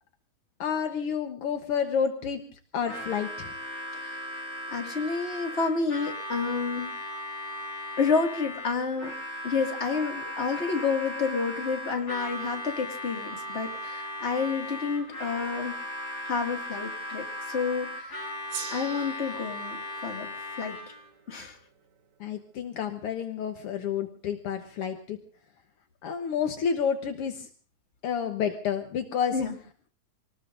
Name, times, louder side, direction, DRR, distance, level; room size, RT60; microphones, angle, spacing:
voice 1, 0.6-2.4 2.7-3.5 22.2-25.2 26.0-27.5 28.0-29.3, left 7 dB, 65° left, 5 dB, 1.4 m, -30 dB
Harmonica, 2.8-21.1, equal, 40° left, 7.7 m, -37 dB
voice 2, 3.9-6.9 8.0-9.1 9.4-15.8 16.2-18.2 18.7-20.3 20.6-20.8 21.3-21.6 29.3-29.6, left 5 dB, 25° left, 2 dB, 1.6 m, -30 dB
Gong, 18.5-23.2, right 8 dB, 60° right, 2.1 m, -45 dB
27.0 x 19.5 x 2.6 m, 0.40 s
omnidirectional pair, 3.9 m